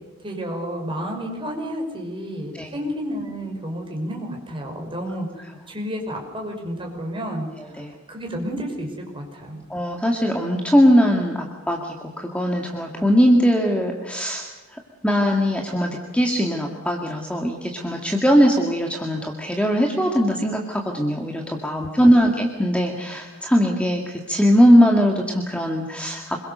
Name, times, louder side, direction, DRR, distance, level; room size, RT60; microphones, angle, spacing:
voice 1, 0.2-9.6 22.0-22.1, equal, 25° right, 1 dB, 5.5 m, -31 dB
voice 2, 7.6-7.9 9.7-14.5 15.0-26.5, equal, 5° left, 1 dB, 2.1 m, -20 dB
26.5 x 22.5 x 6.7 m, 1.2 s
head